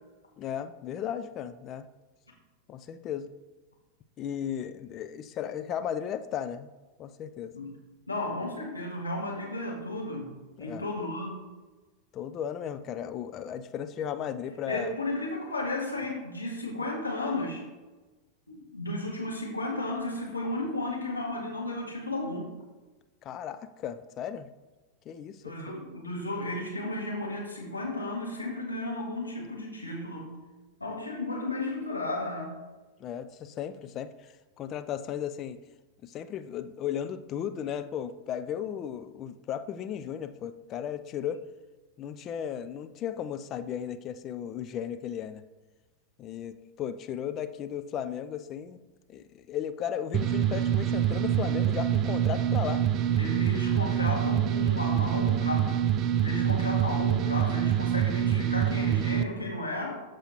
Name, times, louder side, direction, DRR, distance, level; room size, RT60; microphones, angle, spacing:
voice 1, 0.4-1.9 2.7-3.3 4.2-6.7 7.0-7.5 10.6-10.8 12.1-14.9 23.2-24.5 25.1-25.5 33.0-35.6 36.0-41.4 42.0-45.4 46.2-48.8 49.1-52.8, left 9 dB, 30° left, 10 dB, 0.5 m, -35 dB
voice 2, 8.1-10.3 10.6-11.3 14.7-17.7 18.5-22.5 25.4-30.3 30.8-32.6 53.2-55.7 56.2-59.9, left 1 dB, 85° left, -3 dB, 2.0 m, -33 dB
sound 1, 50.1-59.2, right 10 dB, 35° right, 0.4 m, -26 dB
13.5 x 4.9 x 3.0 m, 1.2 s
figure-of-eight pair, 90°, 0 cm